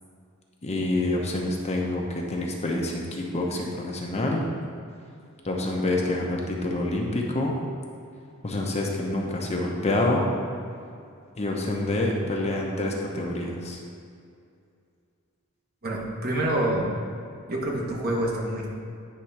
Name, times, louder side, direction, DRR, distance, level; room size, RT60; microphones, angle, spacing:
voice 1, 0.6-4.4 5.4-7.5 8.4-10.3 11.4-13.8, left 2 dB, 30° left, -1 dB, 0.9 m, -27 dB
voice 2, 15.8-16.9 17.5-18.7, right 1 dB, 45° right, -2 dB, 1.4 m, -27 dB
9.4 x 3.8 x 5.8 m, 2.4 s
head